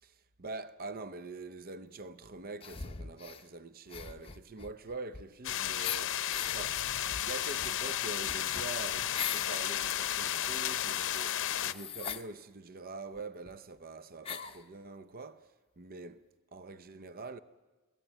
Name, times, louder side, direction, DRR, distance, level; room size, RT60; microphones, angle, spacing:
voice 1, 0.0-7.0 7.2-17.4, right 3 dB, 40° right, 0.7 m, -45 dB
sound 1, 2.6-3.4 3.9-5.5 5.8-6.6 7.1-9.6 10.0-12.3 13.2-13.3 13.5-13.6 14.2-14.6, left 7 dB, 25° left, 0.8 m, -42 dB
sound 2, 5.4-11.7, left 11 dB, 60° left, 0.7 m, -33 dB
28.5 x 17.5 x 9.1 m
head